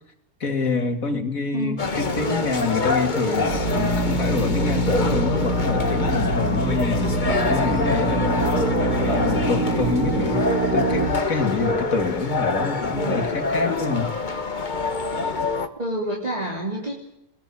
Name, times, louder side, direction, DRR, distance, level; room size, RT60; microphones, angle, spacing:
voice 1, 0.4-8.4 9.0-14.1, left 4 dB, 55° left, 6 dB, 3.0 m, -27 dB
sound 1, 1.8-15.7, left 3 dB, 30° left, 1.4 m, -25 dB
Drill, 3.4-12.0, right 2 dB, 70° right, 2.2 m, -25 dB
voice 2, 15.8-16.9, right 1 dB, 25° right, -2 dB, 3.4 m, -27 dB
21.5 x 21.0 x 8.5 m, 0.80 s
omnidirectional pair, 1.7 m